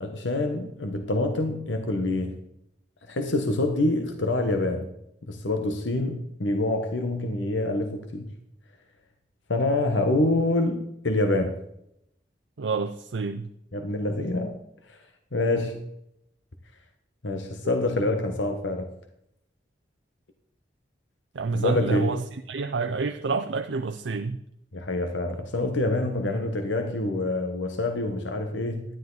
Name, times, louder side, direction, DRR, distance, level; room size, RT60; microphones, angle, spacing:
voice 1, 0.0-2.4 3.1-4.9 5.3-8.3 9.5-11.6 13.7-14.6 14.9-15.0 15.3-15.8 17.2-18.9 21.5-22.1 24.7-28.8, left 2 dB, 85° left, 6 dB, 1.2 m, -26 dB
voice 2, 12.6-13.5 17.6-17.8 21.3-24.4, right 4 dB, 75° right, 8 dB, 0.5 m, -28 dB
12.0 x 10.5 x 3.9 m, 0.78 s
head